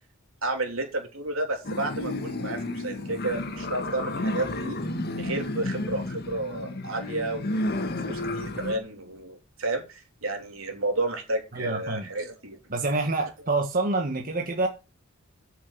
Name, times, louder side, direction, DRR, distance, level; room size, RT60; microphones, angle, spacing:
voice 1, 0.4-4.8 5.2-12.6, right 2 dB, 75° right, 3.3 m, -31 dB
sound 1, 1.6-8.8, left 2 dB, 50° left, 1.5 m, -31 dB
voice 2, 11.5-12.1 12.7-14.7, right 3 dB, 45° right, 1.5 m, -27 dB
8.8 x 6.6 x 6.8 m
head